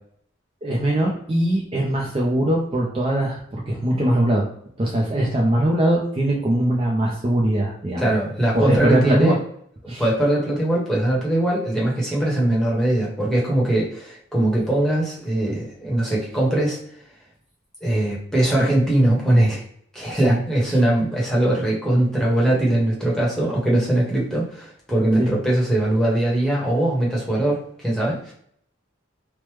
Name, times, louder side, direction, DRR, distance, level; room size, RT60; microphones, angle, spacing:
voice 1, 0.6-4.4 4.8-8.1 8.5-9.4 9.9-10.0 20.2-20.4 25.2-25.3, right 1 dB, 25° right, -3 dB, 0.4 m, -21 dB
voice 2, 8.0-9.4 9.8-16.8 17.8-19.6 19.9-28.3, right 1 dB, ahead, -5 dB, 0.9 m, -21 dB
3.1 x 2.1 x 3.1 m, 0.65 s
head